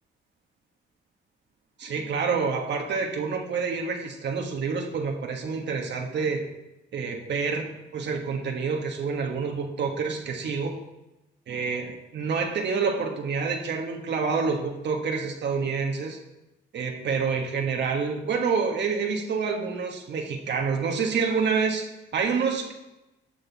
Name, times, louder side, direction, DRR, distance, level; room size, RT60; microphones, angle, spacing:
voice 1, 1.8-6.4 6.9-10.8 11.5-16.2 16.7-22.7, right 5 dB, 60° right, 2 dB, 1.4 m, -28 dB
11.5 x 6.6 x 4.0 m, 0.96 s
cardioid pair, 90°, 20 cm